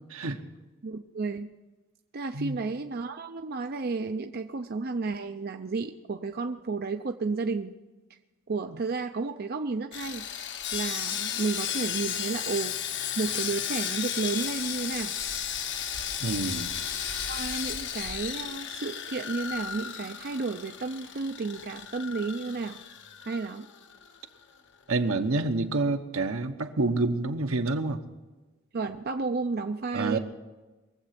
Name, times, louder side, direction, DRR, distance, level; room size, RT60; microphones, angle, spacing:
voice 1, 0.8-1.5 2.1-7.7 8.5-10.3 10.7-12.7 13.2-15.1 17.3-22.8 23.2-23.7 28.7-30.2, right 4 dB, 45° right, 6 dB, 0.5 m, -32 dB
Sawing, 9.9-24.2 24.4-24.6 25.1-25.2, left 8 dB, 55° left, 0.9 m, -34 dB
voice 2, 16.2-16.7 24.9-28.0 29.9-30.2, right 3 dB, 75° right, 6 dB, 1.1 m, -28 dB
22.0 x 7.9 x 5.9 m, 1.2 s
head